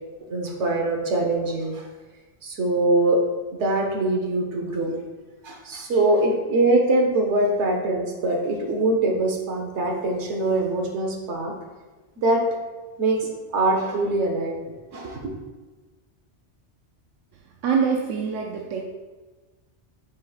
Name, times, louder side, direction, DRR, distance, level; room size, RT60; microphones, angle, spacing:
voice 1, 0.2-1.8 2.4-3.2 3.6-5.0 5.4-11.5 12.2-12.4 13.0-14.5 14.9-15.4, right 2 dB, 75° right, 1 dB, 1.3 m, -23 dB
voice 2, 17.6-18.8, right 6 dB, 90° right, 1 dB, 0.9 m, -24 dB
8.6 x 4.8 x 2.4 m, 1.3 s
omnidirectional pair, 1.2 m